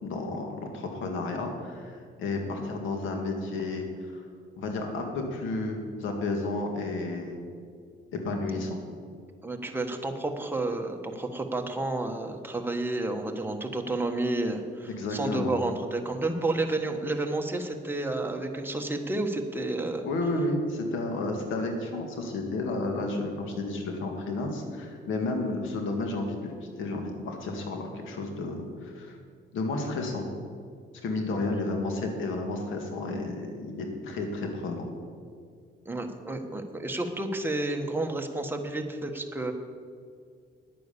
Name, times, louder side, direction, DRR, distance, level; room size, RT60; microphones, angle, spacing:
voice 1, 0.0-3.9 4.1-4.2 4.6-7.4 8.1-8.8 15.0-15.5 20.0-26.5 26.8-29.2 29.5-30.3 31.0-34.9, left 2 dB, 85° left, 3 dB, 2.1 m, -32 dB
voice 2, 9.4-20.1 31.4-31.5 35.8-39.5, right 2 dB, 10° right, 3 dB, 1.4 m, -31 dB
10.0 x 9.2 x 6.9 m, 2.1 s
cardioid pair, 90°, 20 cm